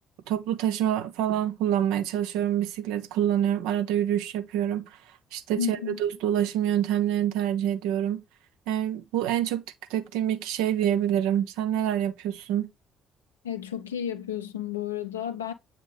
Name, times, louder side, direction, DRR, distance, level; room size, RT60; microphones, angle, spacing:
voice 1, 0.3-4.9 5.3-8.2 8.7-9.6 9.9-12.7, right 10 dB, 70° right, 0.7 m, -26 dB
voice 2, 5.6-6.0 13.4-15.5, left 9 dB, 85° left, 0.6 m, -32 dB
8.1 x 3.8 x 3.5 m
figure-of-eight pair, 50°, 0 cm